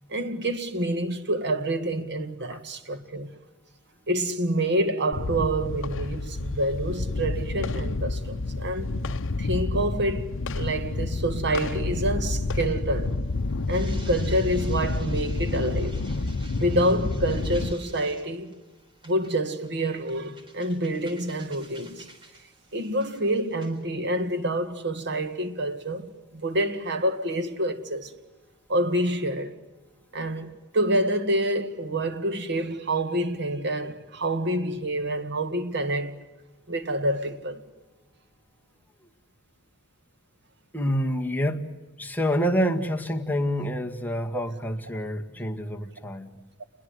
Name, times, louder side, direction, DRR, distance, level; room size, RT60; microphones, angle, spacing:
voice 1, 0.1-3.4 4.1-8.9 9.4-13.2 13.7-16.0 16.6-18.6 19.1-22.1 22.7-28.1 28.7-29.6 30.1-36.2 36.7-37.6 44.3-44.4, right 1 dB, 50° right, 2.0 m, -27 dB
sound 1, 5.1-17.7, left 2 dB, 60° left, 0.9 m, -29 dB
sound 2, 12.3-23.8, right 1 dB, 25° right, 3.7 m, -51 dB
voice 2, 40.7-41.7 42.0-46.3, equal, 10° left, 2.0 m, -27 dB
29.0 x 22.0 x 8.1 m
head